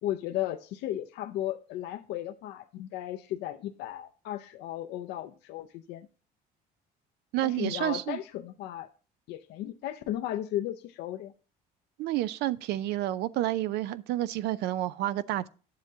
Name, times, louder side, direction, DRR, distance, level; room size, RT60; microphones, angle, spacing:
voice 1, 0.0-6.1 7.4-8.9 9.3-11.3, left 13 dB, 85° left, 0.5 m, -35 dB
voice 2, 7.3-8.2 12.0-15.5, right 14 dB, 85° right, 0.5 m, -30 dB
10.5 x 7.5 x 2.7 m
cardioid pair, 110°, 17 cm